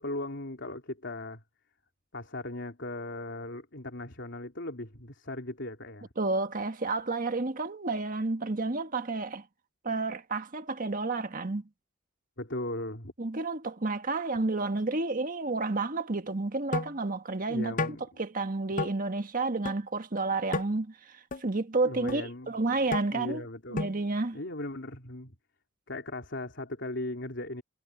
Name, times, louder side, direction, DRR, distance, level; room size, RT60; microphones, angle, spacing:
voice 1, 0.0-1.4 2.1-6.1 12.4-13.1 17.5-18.0 21.8-23.8 24.3-25.3 25.9-27.6, left 1 dB, 60° left, 3.6 m, -38 dB
voice 2, 6.2-9.5 9.8-11.7 13.2-23.4 23.7-24.4, right 3 dB, 45° right, 1.5 m, -31 dB
sound 1, 16.7-17.0 17.8-18.0 18.8-18.9 19.7-19.8 20.5-20.7 21.3-21.4 22.1-22.2 22.9-23.0 23.8-24.0, left 3 dB, 40° left, 0.8 m, -31 dB
head